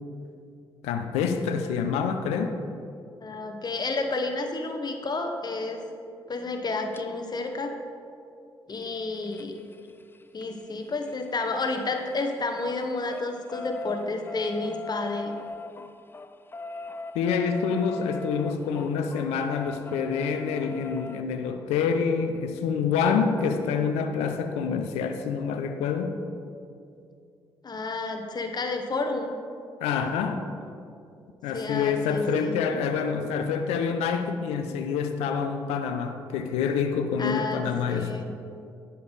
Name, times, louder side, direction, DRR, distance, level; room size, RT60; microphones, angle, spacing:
voice 1, 0.8-2.6 17.1-26.1 29.8-30.4 31.4-38.2, left 6 dB, 80° left, 7 dB, 0.5 m, -27 dB
voice 2, 3.2-5.8 6.3-7.7 8.7-9.5 10.3-15.4 27.6-29.4 31.5-32.6 37.2-38.3, left 3 dB, 40° left, 4 dB, 1.0 m, -30 dB
sound 1, 6.9-7.0 8.7-12.2 12.5-21.2 22.9-23.0 23.3-23.4 23.7-23.8, left 2 dB, 20° left, 0.4 m, -41 dB
9.9 x 5.4 x 4.0 m, 2.5 s
hypercardioid pair, 45°, 11 cm